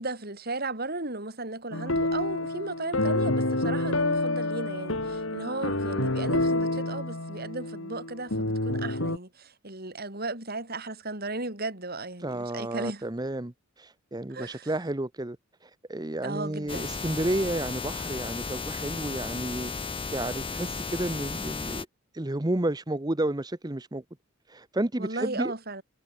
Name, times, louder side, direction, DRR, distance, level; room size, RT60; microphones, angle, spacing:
voice 1, 0.0-13.0 14.3-14.7 16.2-16.9 25.0-25.8, right 2 dB, 50° right, 6.0 m, -35 dB
sound 1, 1.7-9.2, left 2 dB, 75° left, 4.2 m, -28 dB
voice 2, 12.2-15.4 15.6-21.9 22.1-24.0 24.5-25.5, right 1 dB, 20° right, 0.9 m, -31 dB
sound 2, 16.7-21.9, left 4 dB, 25° left, 1.7 m, -34 dB
head